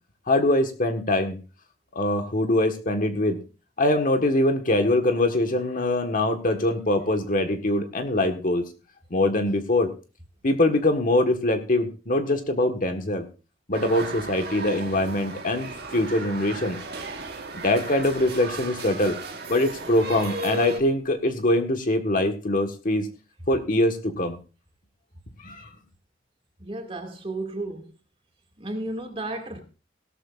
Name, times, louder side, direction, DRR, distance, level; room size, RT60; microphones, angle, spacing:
voice 1, 0.3-1.4 1.9-3.4 3.8-8.6 9.1-9.9 10.4-13.3 13.7-16.8 17.5-19.1 19.5-23.1 23.5-24.4 25.4-25.7, left 1 dB, 45° left, 5 dB, 1.5 m, -23 dB
sound 1, 13.7-20.8, right 2 dB, 60° right, 1.6 m, -35 dB
voice 2, 26.6-27.8 28.6-29.6, right 2 dB, 30° right, 4 dB, 2.3 m, -33 dB
17.0 x 13.0 x 2.5 m, 0.33 s
head